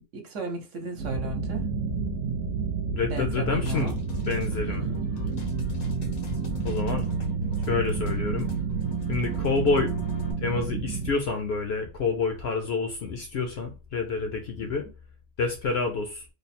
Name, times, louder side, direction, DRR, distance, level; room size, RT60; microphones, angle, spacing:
voice 1, 0.1-1.6 3.1-4.0 4.6-4.9 14.6-14.7, right 2 dB, 65° right, 1.1 m, -35 dB
sound 1, 1.0-11.1, right 5 dB, 85° right, 1.1 m, -30 dB
voice 2, 2.9-3.9 4.2-4.9 6.6-7.1 7.7-8.5 9.1-9.9 10.4-14.9 15.4-16.3, left 4 dB, 60° left, 0.7 m, -28 dB
sound 2, 3.7-10.3, equal, 85° left, 1.4 m, -38 dB
3.2 x 2.0 x 4.1 m
omnidirectional pair, 1.4 m